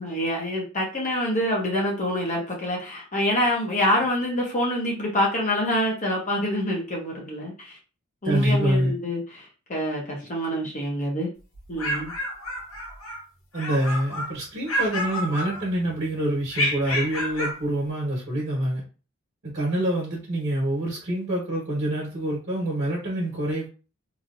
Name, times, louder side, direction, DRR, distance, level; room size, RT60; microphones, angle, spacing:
voice 1, 0.0-7.8 8.2-11.3 11.7-12.1, equal, 35° left, -2 dB, 0.9 m, -26 dB
voice 2, 8.2-8.9 13.5-18.8 19.4-23.7, right 1 dB, 55° right, -5 dB, 1.4 m, -26 dB
sound 1, 11.5-13.2 13.5-14.3 14.7-15.9 16.5-17.6, equal, 75° left, 1.0 m, -29 dB
3.0 x 2.7 x 2.6 m, 0.34 s
head